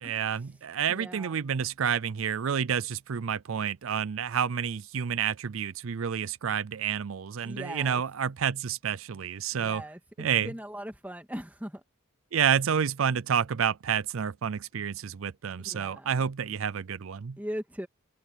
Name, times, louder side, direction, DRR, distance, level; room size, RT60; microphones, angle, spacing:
voice 1, 0.0-9.8 10.2-10.5 12.3-17.4, right 7 dB, 80° right, 0.5 m, -29 dB
voice 2, 0.9-1.4 7.4-8.0 9.5-11.8 15.6-16.2 17.4-17.9, equal, 10° right, 1.9 m, -40 dB
open air
head